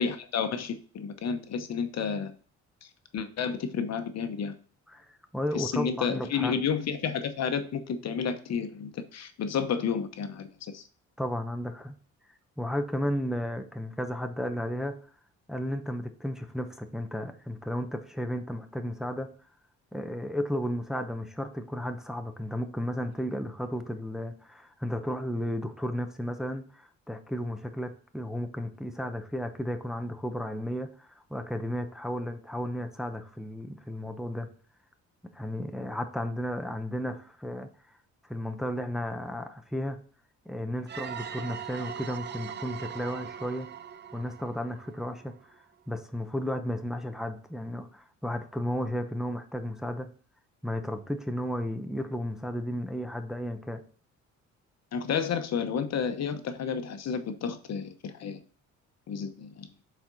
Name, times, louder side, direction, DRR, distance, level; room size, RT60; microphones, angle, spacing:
voice 1, 0.0-2.3 3.1-4.5 5.5-10.8 54.9-58.4 59.1-59.7, left 6 dB, 60° left, 9 dB, 1.0 m, -31 dB
voice 2, 4.9-6.6 11.2-11.9 12.6-15.0 15.5-19.3 19.9-34.5 35.2-37.7 38.3-40.0 40.5-43.7 44.1-45.3 45.9-50.1 50.6-53.8, equal, ahead, 6 dB, 0.8 m, -33 dB
sound 1, 40.9-45.5, right 8 dB, 35° right, 0.6 m, -40 dB
7.1 x 4.4 x 4.0 m, 0.42 s
cardioid pair, 90°, 30 cm